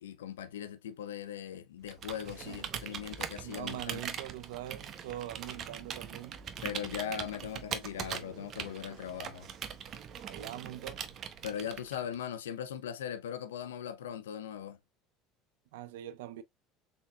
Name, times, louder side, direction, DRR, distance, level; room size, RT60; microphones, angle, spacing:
voice 1, 0.0-4.0 6.6-9.5 11.4-14.8, left 9 dB, 90° left, 0.5 m, -39 dB
Computer keyboard, 1.8-12.1, right 8 dB, 45° right, 0.8 m, -41 dB
voice 2, 3.4-6.4 10.2-11.1 15.7-16.4, right 13 dB, 80° right, 0.5 m, -43 dB
4.3 x 4.0 x 2.2 m
hypercardioid pair, 80°, 0 cm